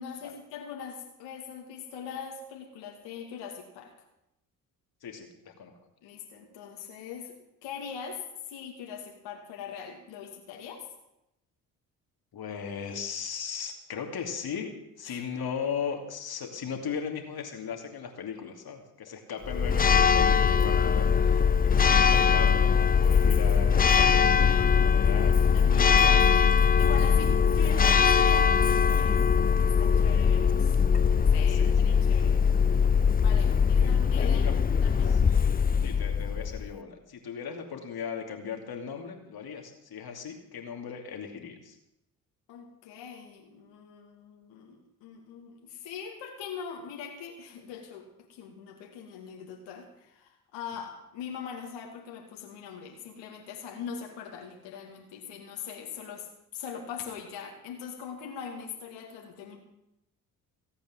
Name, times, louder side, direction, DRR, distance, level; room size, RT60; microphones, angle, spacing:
voice 1, 0.0-3.9 6.0-8.2 8.5-10.9 15.1-15.2 19.1-19.2 25.1-26.5 26.8-30.7 31.3-32.4 33.2-35.2 42.5-59.6, left 6 dB, 70° left, 1 dB, 2.6 m, -42 dB
voice 2, 5.0-5.7 12.3-14.7 15.0-24.5 24.9-26.3 31.4-31.7 33.8-33.9 34.2-34.6 35.8-41.8, left 6 dB, 55° left, 4 dB, 2.7 m, -37 dB
Church bell, 19.4-36.7, left 6 dB, 20° left, 0.5 m, -22 dB
18.0 x 8.6 x 7.7 m, 0.84 s
hypercardioid pair, 45°, 45 cm